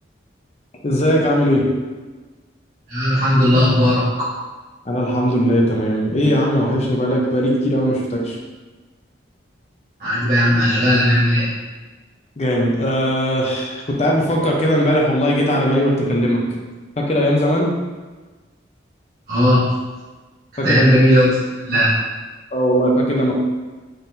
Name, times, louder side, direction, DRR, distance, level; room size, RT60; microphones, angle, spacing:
voice 1, 0.8-1.6 4.9-8.4 12.4-16.4 17.0-17.7 20.6-20.9 22.5-23.3, equal, 35° left, -2 dB, 0.6 m, -19 dB
voice 2, 2.9-4.3 10.0-11.5 19.3-19.7 20.6-21.4 21.6-22.0, equal, 45° right, -14 dB, 1.5 m, -16 dB
4.1 x 3.8 x 2.6 m, 1.3 s
head